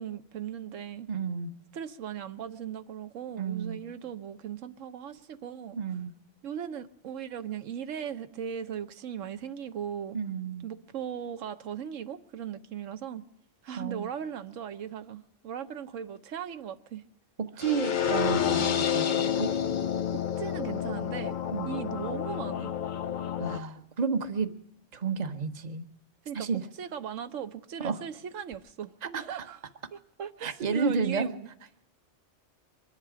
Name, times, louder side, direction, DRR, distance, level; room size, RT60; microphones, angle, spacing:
voice 1, 0.0-1.1 1.7-5.8 6.4-10.2 10.6-13.2 13.6-17.0 17.6-17.7 20.1-21.4 21.7-22.8 26.3-28.9 29.3-29.6 29.9-31.5, right 8 dB, 85° right, 1.1 m, -38 dB
voice 2, 1.1-1.5 3.4-3.8 5.8-6.1 10.1-10.7 13.8-14.1 17.4-19.5 21.5-21.7 23.4-24.5 24.9-25.8 26.3-26.6 27.8-28.0 29.0-29.3 30.4-31.3, right 5 dB, 35° right, 1.0 m, -31 dB
sound 1, 17.6-23.6, left 9 dB, 50° left, 0.7 m, -29 dB
24.0 x 11.0 x 4.9 m
omnidirectional pair, 1.3 m